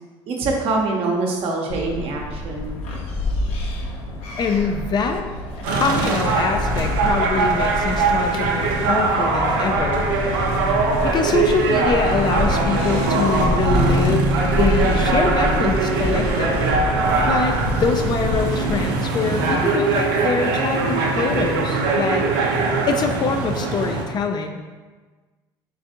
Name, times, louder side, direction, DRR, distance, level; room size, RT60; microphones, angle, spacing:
voice 1, 0.3-2.8, right 3 dB, 60° right, 0 dB, 0.8 m, -24 dB
sound 1, 1.7-18.9, left 1 dB, 65° left, 0.7 m, -27 dB
voice 2, 4.4-5.3 5.7-10.1 10.6-10.8 11.0-14.3 14.6-17.0 17.3-22.3 22.9-24.6, left 4 dB, 40° left, 5 dB, 0.3 m, -24 dB
sound 2, 5.6-24.0, right 3 dB, 85° right, 0.5 m, -21 dB
3.8 x 3.3 x 2.7 m, 1.4 s
supercardioid pair, 75°, 11 cm